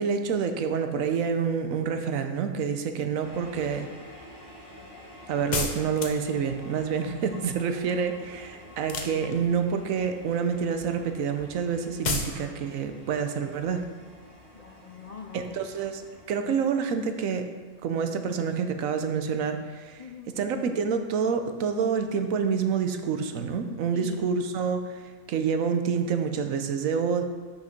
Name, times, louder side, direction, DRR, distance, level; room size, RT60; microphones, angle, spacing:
voice 1, 0.0-3.9 5.3-13.9 15.3-17.5 17.8-20.0 20.4-25.0 25.3-27.2, right 6 dB, 90° right, 7 dB, 1.1 m, -28 dB
sound 1, 3.2-16.3, left 1 dB, 55° right, 2.5 m, -48 dB
sound 2, 5.5-6.4 8.8-9.6 12.0-12.4, left 4 dB, 40° left, 0.8 m, -30 dB
voice 2, 12.3-12.7 14.5-15.5 20.0-20.4 23.9-24.4, left 6 dB, 60° left, 2 dB, 0.4 m, -42 dB
6.6 x 5.9 x 5.8 m, 1.5 s
omnidirectional pair, 1.4 m